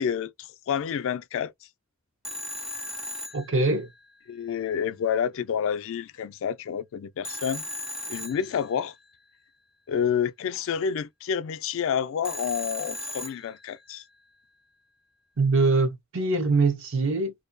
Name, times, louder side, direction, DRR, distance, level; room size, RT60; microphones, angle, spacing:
voice 1, 0.0-1.5 4.3-7.6 8.1-8.9 9.9-14.0, left 7 dB, 65° left, 0.3 m, -29 dB
Telephone, 2.2-4.2 7.2-9.0 12.2-13.9, left 1 dB, 5° right, 0.4 m, -37 dB
voice 2, 3.3-3.9 15.4-17.3, right 3 dB, 60° right, 0.7 m, -23 dB
2.6 x 2.2 x 2.5 m
head